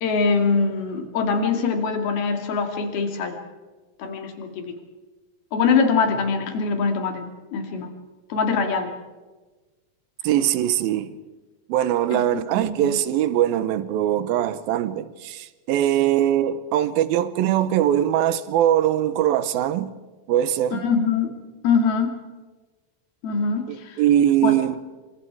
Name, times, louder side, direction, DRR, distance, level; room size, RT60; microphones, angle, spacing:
voice 1, 0.0-3.4 4.0-4.7 5.5-7.9 8.3-8.9 12.1-13.0 20.7-21.4 21.6-22.2 23.2-24.0 24.4-24.6, left 5 dB, 90° left, 4.3 m, -23 dB
voice 2, 10.2-11.2 11.7-19.9 20.3-20.8 23.7-24.8, right 11 dB, 80° right, 2.8 m, -21 dB
27.5 x 24.5 x 4.8 m
omnidirectional pair, 4.2 m